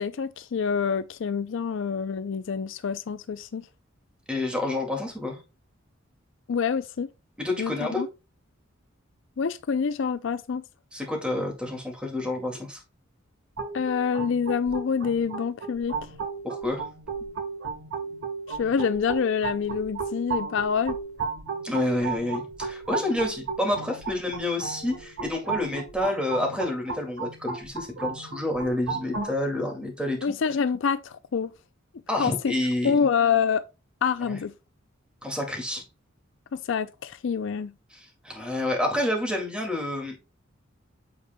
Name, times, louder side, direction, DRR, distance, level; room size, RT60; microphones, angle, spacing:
voice 1, 0.0-3.7 6.5-7.1 7.6-8.1 9.4-10.6 13.7-16.1 18.5-21.0 30.2-31.5 32.2-32.5 32.8-33.6 34.0-34.5 36.5-37.7, left 6 dB, 60° left, 0.4 m, -26 dB
voice 2, 4.3-5.4 7.4-8.0 10.9-12.8 16.4-16.9 21.6-30.2 32.1-33.1 34.3-34.4 35.2-35.8 37.9-40.3, left 1 dB, 5° right, 2.1 m, -29 dB
sound 1, 13.6-29.3, right 5 dB, 70° right, 1.5 m, -34 dB
8.7 x 6.5 x 2.2 m
head